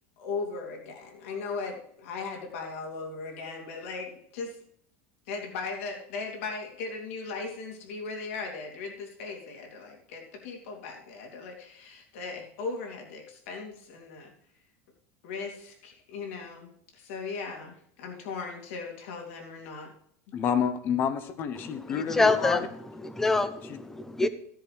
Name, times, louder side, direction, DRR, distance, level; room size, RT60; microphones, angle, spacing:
voice 1, 0.2-4.6 5.3-14.3 15.2-19.9, left 4 dB, 70° left, 1 dB, 2.9 m, -38 dB
voice 2, 20.3-22.7 23.6-23.8, left 7 dB, 30° left, 12 dB, 0.8 m, -29 dB
voice 3, 22.1-22.6 23.0-24.3, left 3 dB, 5° left, 12 dB, 0.5 m, -25 dB
15.5 x 10.0 x 3.3 m, 0.67 s
supercardioid pair, 180°, 7 cm